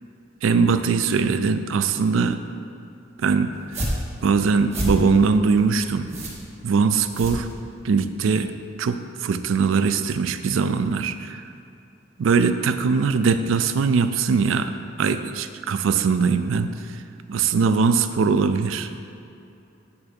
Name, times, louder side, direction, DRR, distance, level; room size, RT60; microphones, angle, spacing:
voice 1, 0.4-2.4 3.2-3.5 4.2-6.1 6.6-7.5 7.8-8.5 8.8-11.4 12.2-14.7 15.0-16.7 17.3-18.9, right 5 dB, 75° right, 10 dB, 0.4 m, -21 dB
sound 1, 3.5-8.0, equal, 35° right, 1.3 m, -31 dB
8.8 x 3.5 x 5.3 m, 2.6 s
head